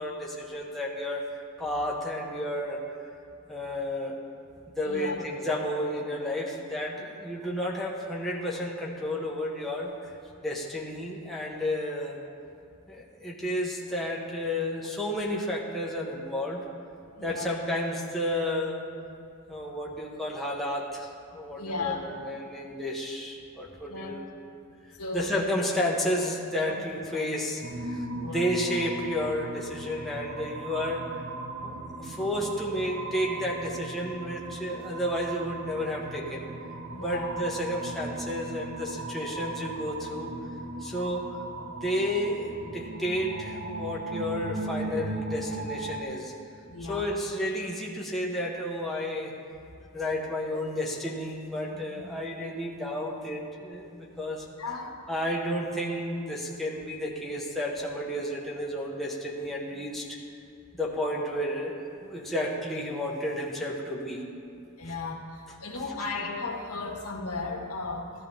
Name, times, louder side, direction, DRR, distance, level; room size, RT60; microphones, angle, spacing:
voice 1, 0.0-2.8 3.5-4.2 4.8-10.1 10.4-12.2 12.9-16.6 17.2-18.9 19.5-24.3 25.1-28.1 28.3-31.1 31.6-36.5 37.0-40.4 40.8-41.4 41.8-46.3 46.9-49.3 49.9-54.5 55.1-60.2 60.7-64.3, left 1 dB, ahead, -4 dB, 1.2 m, -32 dB
voice 2, 4.8-5.2 17.2-17.5 21.6-22.2 23.9-24.2 25.0-25.3 26.7-26.8 27.1-27.3 28.1-28.5 36.9-37.3 46.7-47.0 54.6-55.0 64.8-68.1, left 3 dB, 80° left, 0 dB, 1.8 m, -35 dB
sound 1, 27.6-46.0, right 2 dB, 50° right, 1.1 m, -37 dB
15.0 x 12.5 x 3.5 m, 2.4 s
head